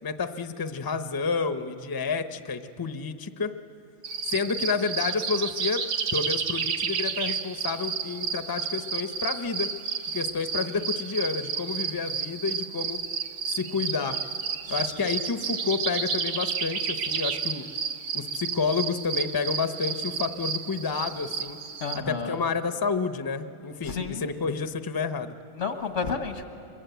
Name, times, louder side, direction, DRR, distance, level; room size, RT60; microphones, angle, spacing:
voice 1, 0.0-3.6 4.3-5.9 6.1-9.7 10.1-13.0 13.5-14.2 14.7-17.6 18.1-21.6 22.1-25.3, left 5 dB, 25° left, 9 dB, 0.6 m, -30 dB
sound 1, 4.0-22.0, right 6 dB, 80° right, 1.3 m, -31 dB
voice 2, 21.8-22.4 23.8-24.3 25.5-26.4, left 5 dB, 85° left, 6 dB, 1.9 m, -31 dB
23.5 x 22.5 x 8.1 m, 2.5 s
omnidirectional pair, 1.2 m